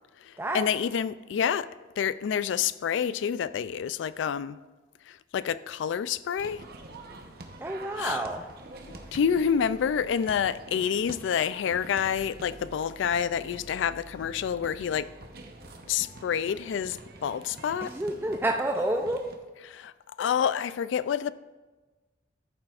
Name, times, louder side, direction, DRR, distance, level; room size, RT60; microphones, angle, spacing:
voice 1, 0.2-1.7 2.0-4.6 5.1-6.6 8.0-8.2 8.9-15.1 15.9-17.9 19.7-19.9 20.2-21.3, left 7 dB, 80° left, 0.3 m, -28 dB
sound 1, 6.4-19.3, right 2 dB, 55° right, 0.9 m, -46 dB
voice 2, 7.6-8.4 17.8-19.3, right 1 dB, 10° right, 0.4 m, -29 dB
13.5 x 7.5 x 2.5 m
head